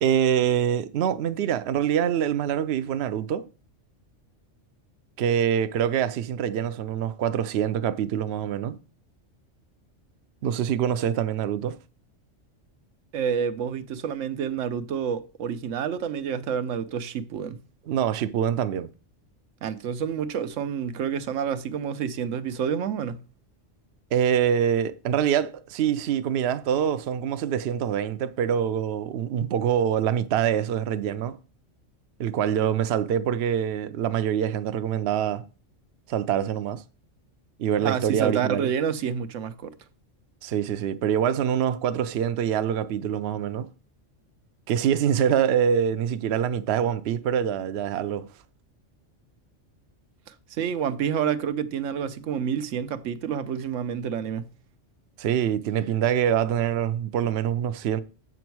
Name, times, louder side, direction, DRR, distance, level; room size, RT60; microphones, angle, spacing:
voice 1, 0.0-3.4 5.2-8.8 10.4-11.8 17.9-18.9 24.1-31.4 32.2-35.4 36.1-36.8 37.6-38.7 40.4-43.7 44.7-48.3 55.2-58.0, right 9 dB, 65° right, 0.8 m, -25 dB
voice 2, 13.1-17.6 19.6-23.2 37.8-39.7 50.3-54.5, right 7 dB, 85° right, 1.0 m, -28 dB
7.8 x 6.1 x 4.6 m
omnidirectional pair, 1.3 m